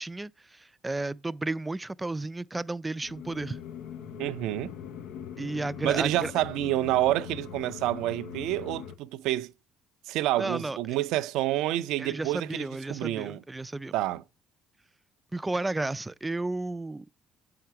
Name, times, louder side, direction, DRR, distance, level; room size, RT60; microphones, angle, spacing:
voice 1, 0.0-3.6 5.4-6.3 10.4-10.8 12.0-13.9 15.3-17.1, right 2 dB, 15° right, 0.4 m, -33 dB
sound 1, 3.0-8.9, left 8 dB, 75° left, 0.8 m, -41 dB
voice 2, 4.2-4.7 5.8-9.5 10.1-13.4 13.9-14.2, right 15 dB, 75° right, 0.4 m, -28 dB
7.9 x 5.8 x 4.9 m
hypercardioid pair, 60°, 0 cm